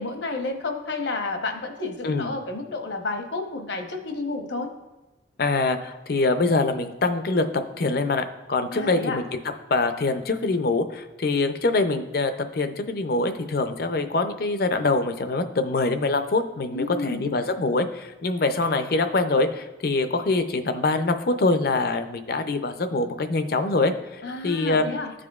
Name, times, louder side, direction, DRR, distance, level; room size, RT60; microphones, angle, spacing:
voice 1, 0.0-4.7 8.7-9.2 16.7-17.3 24.2-25.1, left 3 dB, 75° left, 4 dB, 0.9 m, -30 dB
voice 2, 5.4-9.2 9.7-24.8, left 3 dB, 55° left, 8 dB, 0.5 m, -24 dB
14.5 x 5.0 x 2.4 m, 1.1 s
head